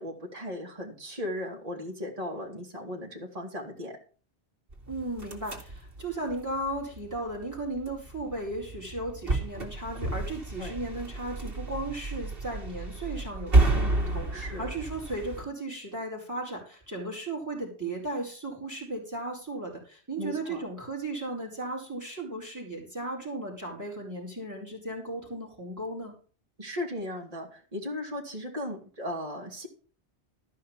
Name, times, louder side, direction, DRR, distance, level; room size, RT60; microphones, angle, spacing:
voice 1, 0.0-4.0 10.6-10.7 14.3-14.7 20.2-20.6 26.6-29.7, left 1 dB, 35° right, -1 dB, 2.6 m, -37 dB
sound 1, 4.7-15.4, right 2 dB, 55° right, 2.7 m, -31 dB
voice 2, 4.9-26.1, right 2 dB, 15° right, -3 dB, 4.6 m, -36 dB
13.5 x 5.6 x 7.3 m, 0.39 s
omnidirectional pair, 1.2 m